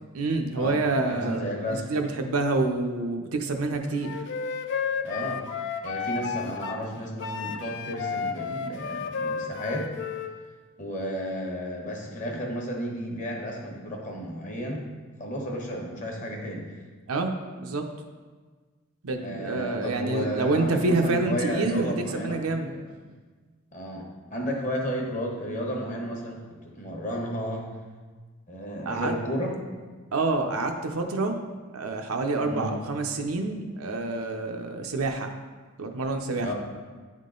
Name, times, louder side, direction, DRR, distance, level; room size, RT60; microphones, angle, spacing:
voice 1, 0.1-1.4 1.7-4.2 17.1-17.9 19.0-22.7 28.9-29.1 30.1-31.4 31.7-35.3 35.8-36.5, right 3 dB, 80° right, 4 dB, 0.6 m, -27 dB
voice 2, 1.1-1.9 5.0-5.4 5.8-9.9 10.8-14.9 15.2-16.7 19.1-22.4 22.7-22.9 23.7-27.7 28.5-29.7 32.4-32.7 36.4-36.5, equal, 35° left, 0 dB, 1.1 m, -32 dB
Wind instrument woodwind instrument, 4.0-6.8 7.2-10.3, left 5 dB, 55° left, 0.4 m, -32 dB
9.7 x 3.7 x 3.8 m, 1.4 s
head